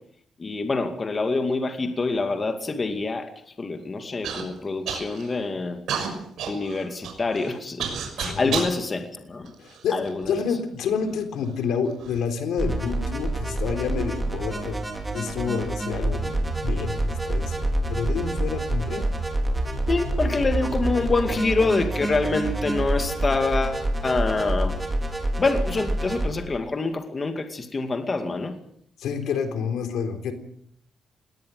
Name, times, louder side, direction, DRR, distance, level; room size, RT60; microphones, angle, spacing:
voice 1, 0.4-5.8 6.5-7.9 8.2-9.5 9.9-10.3 19.9-24.8 25.4-28.6, left 3 dB, 30° left, 6 dB, 2.4 m, -26 dB
Human voice / Cough, 4.2-4.4 4.9-5.4 5.9-8.8 9.5-10.3 11.0-11.1 11.8-12.2, right 7 dB, 80° right, 6.4 m, -31 dB
voice 2, 8.2-8.5 9.6-10.0 10.3-14.8 15.1-19.1 29.0-30.3, left 6 dB, 85° left, 7 dB, 3.9 m, -29 dB
sound 1, 12.6-26.3, right 1 dB, 15° right, 4.6 m, -27 dB
21.5 x 18.5 x 7.8 m, 0.66 s
cardioid pair, 125°, 0 cm